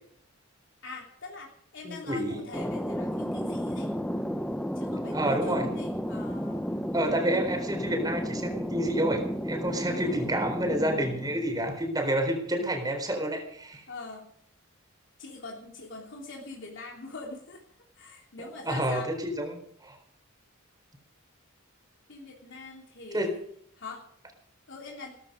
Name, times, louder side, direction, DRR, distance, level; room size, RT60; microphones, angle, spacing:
voice 1, 0.8-3.9 4.7-6.7 9.7-10.2 13.9-14.3 15.2-17.6 18.0-19.1 22.1-23.4 23.8-24.0 24.7-25.1, left 3 dB, 60° left, -1 dB, 3.4 m, -43 dB
voice 2, 1.8-2.4 5.1-5.7 6.9-13.8 18.4-20.0 23.1-23.4, right 1 dB, 20° right, 4 dB, 4.2 m, -29 dB
Thunder, 2.5-11.8, equal, 5° left, 0.6 m, -33 dB
17.0 x 14.5 x 5.2 m, 0.66 s
head